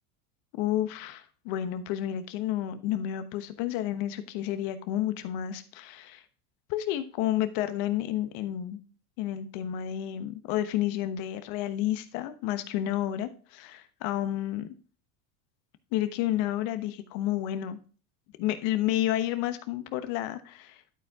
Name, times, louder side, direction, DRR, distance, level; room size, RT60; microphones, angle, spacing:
voice 1, 0.6-6.2 6.7-8.8 9.2-14.7 15.9-17.8 18.4-20.9, left 12 dB, 60° left, 10 dB, 1.2 m, -30 dB
12.0 x 4.5 x 3.6 m, 0.39 s
supercardioid pair, 110°, 46 cm